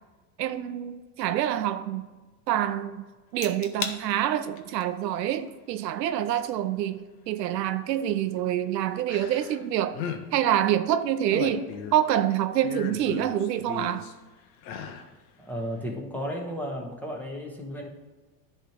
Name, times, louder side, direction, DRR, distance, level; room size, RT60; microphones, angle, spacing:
voice 1, 0.4-2.1 2.5-3.1 3.3-10.0 10.3-14.1, right 11 dB, 85° right, 0.6 m, -26 dB
sound 1, 3.4-4.0 4.4-4.8 6.4-6.5 9.1-9.6 9.9-10.2 11.0-12.1 12.6-14.1 14.6-15.1 15.5-15.6, left 7 dB, 55° left, 1.0 m, -35 dB
voice 2, 15.4-17.9, equal, 5° left, 1.3 m, -34 dB
10.0 x 3.4 x 5.9 m
hypercardioid pair, 105°, 49 cm